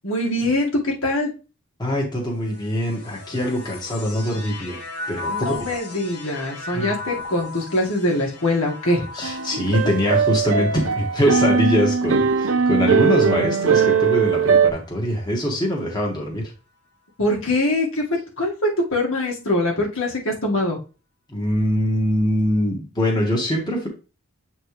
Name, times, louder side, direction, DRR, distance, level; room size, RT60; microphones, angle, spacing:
voice 1, 0.0-1.3 5.3-9.1 17.2-18.0 18.4-20.8, left 1 dB, 65° left, -2 dB, 1.9 m, -23 dB
voice 2, 1.8-4.8 5.1-5.6 6.7-7.0 9.1-16.4 21.3-23.9, equal, 20° left, -2 dB, 1.7 m, -23 dB
sound 1, 2.3-13.8 14.6-15.3, left 3 dB, 85° left, 1.5 m, -37 dB
sound 2, 9.2-14.7, right 6 dB, 65° right, 0.7 m, -19 dB
7.9 x 4.5 x 3.2 m, 0.32 s
head